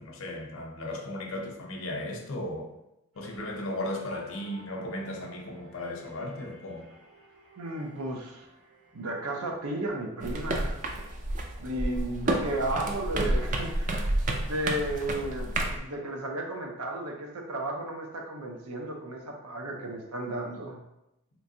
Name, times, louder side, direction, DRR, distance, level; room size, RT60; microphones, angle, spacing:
voice 1, 0.0-2.7 3.2-6.9, left 1 dB, 65° left, 1 dB, 0.6 m, -36 dB
sound 1, 3.1-10.1, equal, 70° right, 1.3 m, -54 dB
voice 2, 7.6-8.5 8.9-10.8 11.6-13.9 14.5-20.8, right 1 dB, 90° right, 1 dB, 0.7 m, -34 dB
sound 2, 10.2-15.8, right 1 dB, 35° right, 0.3 m, -30 dB
3.4 x 3.0 x 2.7 m, 0.88 s
head